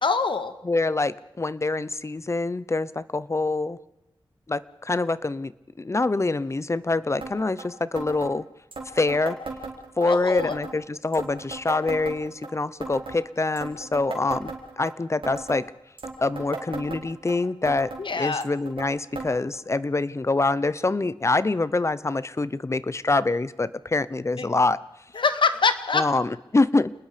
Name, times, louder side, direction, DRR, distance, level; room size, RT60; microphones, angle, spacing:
voice 1, 0.0-0.5 10.1-10.5 18.0-18.4 24.4-24.5 25.2-26.0, left 4 dB, 70° left, 10 dB, 1.8 m, -24 dB
voice 2, 0.6-3.8 4.5-5.5 5.8-8.4 8.9-9.4 10.0-15.7 16.2-24.8 25.9-26.9, left 3 dB, 35° left, 17 dB, 0.8 m, -25 dB
sound 1, 7.2-7.3 7.6-7.7 8.0-8.3 8.7-10.1 10.4-10.8 11.1-12.5 12.8-13.2 13.6-14.9 15.2-15.6 16.0-17.3 17.7-18.0 18.4-18.9 19.2-19.3 19.5-19.6 20.4-20.5 21.3-21.4, right 3 dB, 90° right, 4.4 m, -36 dB
28.5 x 20.0 x 5.1 m, 0.93 s
wide cardioid pair, 100°, 9 cm